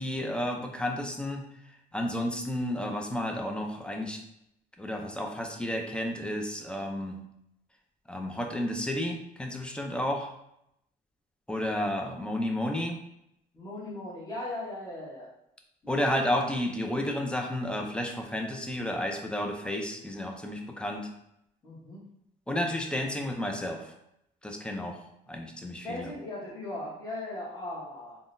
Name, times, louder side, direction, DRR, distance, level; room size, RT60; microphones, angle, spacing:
voice 1, 0.0-4.2 4.8-7.2 8.1-10.3 11.5-13.0 15.9-21.1 22.5-23.9 24.4-25.0 25.3-26.1, left 1 dB, 5° left, 2 dB, 0.4 m, -32 dB
voice 2, 13.5-15.3 15.8-16.0 21.6-22.0 25.8-28.2, left 1 dB, 25° left, -6 dB, 1.0 m, -38 dB
3.6 x 2.1 x 2.5 m, 0.78 s
cardioid pair, 110°, 17 cm